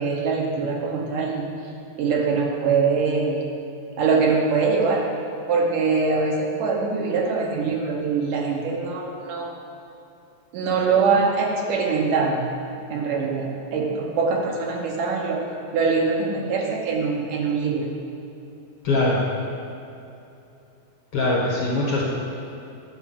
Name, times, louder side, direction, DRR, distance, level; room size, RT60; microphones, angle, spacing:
voice 1, 0.0-1.5 2.0-3.4 4.0-5.0 5.5-9.5 10.5-12.4 12.9-15.4 15.7-17.8, right 4 dB, 70° right, 0 dB, 2.5 m, -23 dB
voice 2, 18.8-19.2 21.1-22.0, left 2 dB, 50° left, -6 dB, 2.1 m, -21 dB
9.3 x 6.2 x 7.4 m, 2.8 s
omnidirectional pair, 4.0 m